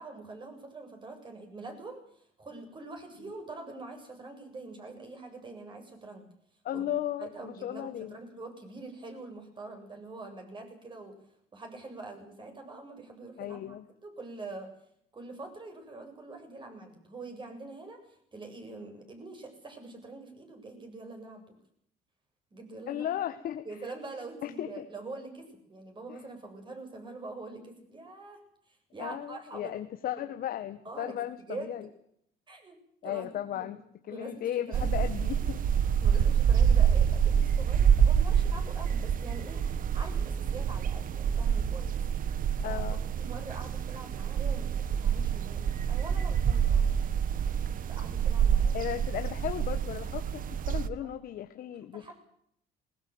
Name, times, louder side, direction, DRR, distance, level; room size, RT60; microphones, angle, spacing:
voice 1, 0.0-2.0 2.4-6.2 6.7-6.9 7.2-11.1 11.5-13.8 14.0-14.7 15.1-21.6 22.5-23.1 23.7-28.4 28.7-29.8 30.8-31.2 31.5-31.9 32.5-32.8 33.0-33.3 33.6-33.7 34.1-35.1 36.0-39.6 39.9-42.0 42.6-42.8 43.2-46.9 47.9-48.9 50.9-51.2 51.9-52.1, right 2 dB, 30° right, 4 dB, 7.7 m, -44 dB
voice 2, 6.6-8.2 13.4-13.8 22.9-23.6 24.4-24.8 26.1-26.2 29.0-31.9 33.0-33.8 34.1-35.6 42.6-43.0 48.7-52.1, left 11 dB, 60° left, 8 dB, 1.4 m, -35 dB
sound 1, 34.7-50.9, right 8 dB, 55° right, 1.4 m, -27 dB
20.5 x 20.0 x 8.0 m, 0.70 s
cardioid pair, 110°, 17 cm